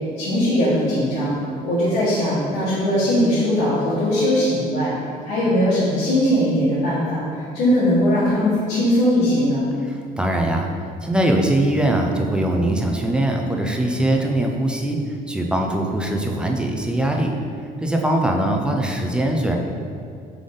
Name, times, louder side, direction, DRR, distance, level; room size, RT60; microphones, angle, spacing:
voice 1, 0.2-1.3 1.6-4.9 5.2-7.2 7.5-9.7, equal, 80° left, -12 dB, 1.3 m, -19 dB
voice 2, 9.8-10.7 11.0-15.0 15.3-17.3 17.8-19.6, right 1 dB, 5° right, 1 dB, 0.4 m, -21 dB
3.7 x 3.4 x 3.8 m, 2.4 s
cardioid pair, 110°, 17 cm